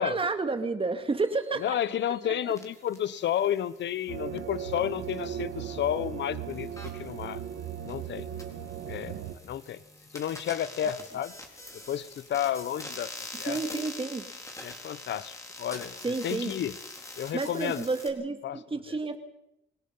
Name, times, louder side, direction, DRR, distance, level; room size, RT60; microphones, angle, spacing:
voice 1, 0.0-1.8 2.3-2.5 10.8-11.0 13.5-14.2 16.0-16.5 17.3-19.2, right 3 dB, 25° right, 8 dB, 2.4 m, -31 dB
sound 1, 1.2-18.1, left 2 dB, 15° left, 4.3 m, -46 dB
voice 2, 1.6-7.4 7.8-8.3 8.8-9.1 9.4-9.8 10.1-11.3 11.9-13.1 13.4-13.6 14.6-16.0 16.2-16.8 17.2-17.8 18.4-18.6 18.9-19.0, left 10 dB, 65° left, 17 dB, 1.0 m, -31 dB
sound 2, 4.1-9.4, right 9 dB, 80° right, 1.5 m, -37 dB
26.0 x 18.5 x 5.6 m, 0.83 s
cardioid pair, 90°, 20 cm